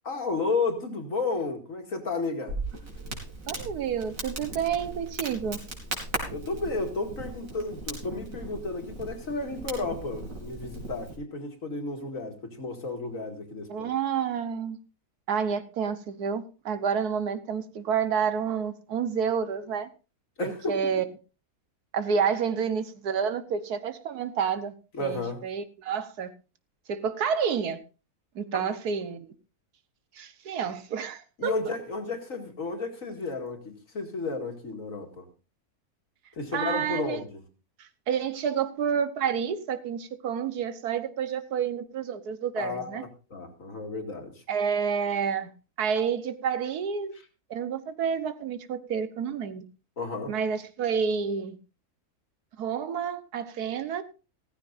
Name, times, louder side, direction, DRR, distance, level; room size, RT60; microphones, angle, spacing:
voice 1, 0.0-2.5 6.3-13.9 20.4-20.9 24.9-25.4 28.5-28.6 30.6-30.7 31.4-35.2 36.4-37.4 42.6-44.4 50.0-50.3, left 3 dB, 60° left, 2.5 m, -32 dB
Crackle, 2.5-11.2, right 2 dB, 60° right, 3.7 m, -38 dB
voice 2, 3.5-5.6 13.7-14.8 15.3-19.9 20.4-21.0 21.9-24.7 25.0-26.3 26.9-27.8 28.3-29.3 30.1-31.5 36.5-37.2 37.8-43.0 44.5-45.5 45.8-47.1 47.5-49.6 50.3-51.6 52.6-54.0, right 7 dB, 85° right, 1.6 m, -29 dB
16.0 x 14.0 x 2.6 m
omnidirectional pair, 1.6 m